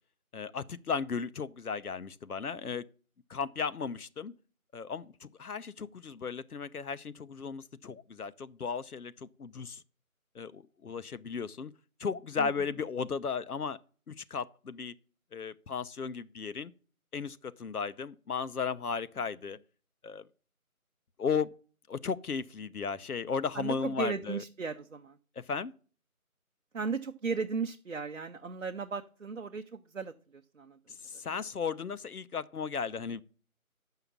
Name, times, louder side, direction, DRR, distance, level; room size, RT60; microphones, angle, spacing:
voice 1, 0.3-2.9 3.3-4.3 4.7-9.8 10.3-11.7 12.0-13.8 14.1-14.9 15.3-16.7 17.1-19.6 20.0-20.3 21.2-21.5 21.9-24.4 25.4-25.7 30.9-33.2, left 6 dB, 85° left, 0.7 m, -35 dB
voice 2, 23.5-25.2 26.7-30.8, right 5 dB, 55° right, 0.6 m, -36 dB
7.1 x 5.7 x 7.2 m
figure-of-eight pair, 170°, 44 cm